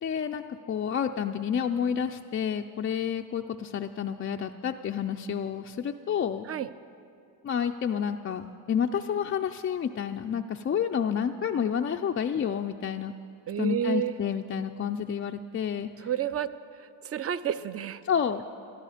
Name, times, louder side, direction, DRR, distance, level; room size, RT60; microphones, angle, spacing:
voice 1, 0.0-6.5 7.4-13.1 13.6-16.1 18.0-18.4, left 8 dB, 30° left, 4 dB, 0.4 m, -29 dB
voice 2, 13.5-14.1 16.0-16.5 16.8-18.0, right 10 dB, 30° right, 15 dB, 0.5 m, -30 dB
12.5 x 12.5 x 5.0 m, 2.5 s
supercardioid pair, 65°, 46 cm